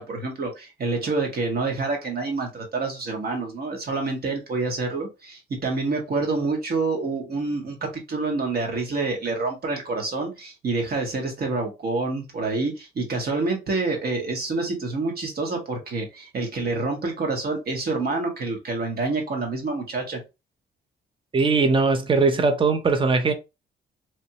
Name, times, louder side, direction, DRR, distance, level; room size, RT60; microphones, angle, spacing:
voice 1, 0.0-20.2, right 3 dB, 50° right, 1.5 m, -27 dB
voice 2, 21.3-23.3, right 4 dB, 25° right, 0.6 m, -20 dB
3.1 x 2.6 x 2.8 m
cardioid pair, 90°, 20 cm